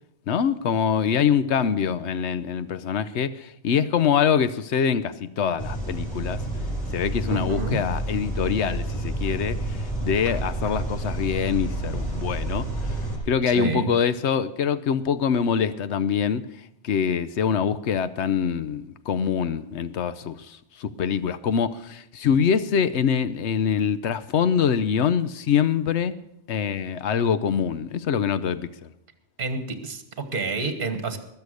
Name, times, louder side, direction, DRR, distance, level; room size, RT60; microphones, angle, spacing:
voice 1, 0.3-6.4 6.9-13.0 13.3-16.4 16.8-26.1 26.5-28.9, left 7 dB, 90° left, 13 dB, 1.0 m, -24 dB
sound 1, 5.6-13.2, right 1 dB, 5° left, 7.1 m, -29 dB
voice 2, 7.3-7.8 13.5-13.9 29.4-31.2, right 4 dB, 50° right, 8 dB, 1.5 m, -29 dB
21.0 x 7.0 x 6.5 m, 0.85 s
omnidirectional pair, 1.1 m